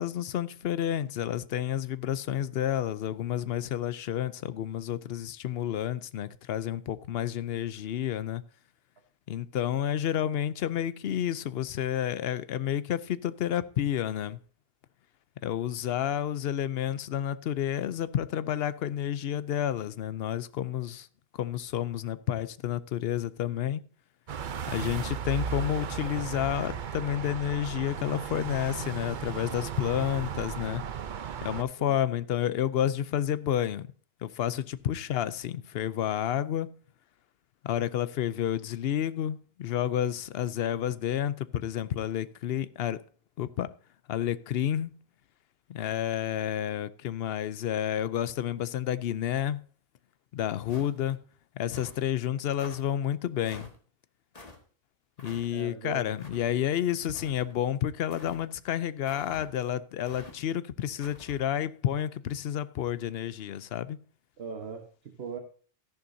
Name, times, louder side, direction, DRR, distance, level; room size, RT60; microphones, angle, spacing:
voice 1, 0.0-8.4 9.3-14.4 15.4-21.1 21.3-23.8 24.7-30.8 31.4-33.9 34.2-36.7 37.6-43.0 43.4-43.7 44.1-44.9 45.7-49.6 50.3-51.2 51.6-53.7 55.2-64.0, left 10 dB, 75° left, 0.9 m, -30 dB
sound 1, 24.3-31.6, right 7 dB, 55° right, 0.8 m, -35 dB
sound 2, 50.7-51.2 51.7-52.0 52.6-52.8 53.4-53.8 54.3-54.6 55.2-55.5 56.2-56.5 57.1-57.6 58.1-58.4 59.0-59.5 60.0-60.3 61.0-61.4, left 2 dB, 40° left, 1.7 m, -47 dB
voice 2, 55.5-56.1 64.4-65.4, right 6 dB, 80° right, 1.4 m, -39 dB
14.0 x 10.5 x 2.7 m
omnidirectional pair, 1.0 m